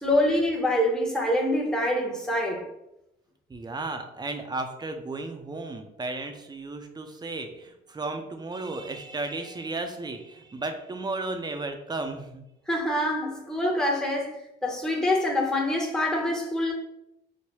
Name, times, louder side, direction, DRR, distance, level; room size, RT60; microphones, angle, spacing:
voice 1, 0.0-2.7 12.7-16.7, left 1 dB, 5° left, 0.8 m, -25 dB
voice 2, 3.5-12.4, right 2 dB, 20° right, 0.5 m, -34 dB
4.8 x 2.1 x 3.0 m
cardioid pair, 90°, 20 cm